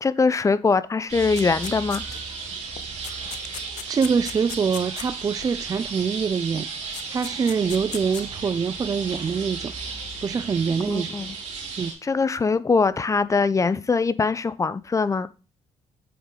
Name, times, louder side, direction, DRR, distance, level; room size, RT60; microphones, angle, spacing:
voice 1, 0.0-2.0 10.9-11.4 12.0-15.3, left 4 dB, 25° left, 0.5 m, -22 dB
sound 1, 1.1-11.9, right 5 dB, 75° right, 2.9 m, -34 dB
sound 2, 1.3-2.4 2.8-5.5 6.6-6.7 6.9-8.3, left 11 dB, 75° left, 0.6 m, -38 dB
voice 2, 3.9-6.7 7.1-9.7 10.2-11.1 11.8-11.9, right 6 dB, 30° right, 0.3 m, -24 dB
7.9 x 4.9 x 3.8 m
cardioid pair, 80°, 12 cm